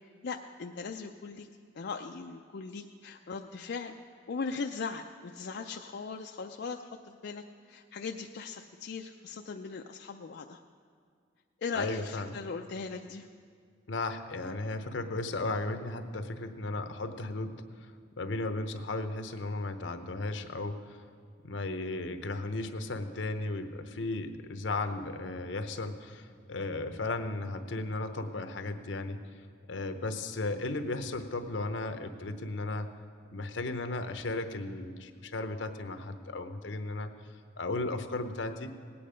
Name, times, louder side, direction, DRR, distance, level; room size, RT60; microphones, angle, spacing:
voice 1, 0.2-1.5 1.7-3.9 4.3-10.6 11.6-13.3, left 5 dB, 65° left, 3 dB, 0.5 m, -39 dB
voice 2, 11.7-12.3 13.9-17.9 18.2-21.0 21.4-29.2 29.7-32.9 33.3-37.1 37.6-38.7, left 2 dB, 80° left, 8 dB, 0.9 m, -35 dB
18.0 x 8.7 x 5.1 m, 2.1 s
head